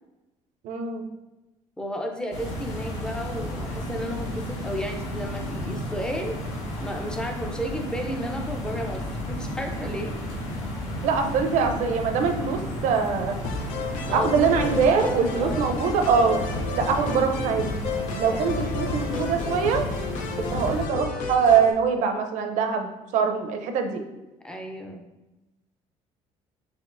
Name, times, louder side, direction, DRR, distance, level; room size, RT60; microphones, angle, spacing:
voice 1, 0.6-1.1 11.0-13.4 14.1-16.4 16.7-17.8 18.2-19.9 20.4-24.0, right 6 dB, 70° right, 5 dB, 0.6 m, -23 dB
voice 2, 1.8-6.4 6.8-10.2 10.4-10.7 14.1-14.7 15.4-15.7 18.3-18.4 24.4-25.0, equal, 5° left, 3 dB, 0.5 m, -33 dB
sound 1, 2.3-20.9, equal, 60° left, 1.3 m, -33 dB
sound 2, 13.4-21.7, left 4 dB, 80° left, 0.6 m, -32 dB
5.9 x 2.8 x 2.5 m, 1.0 s
cardioid pair, 145°, 13 cm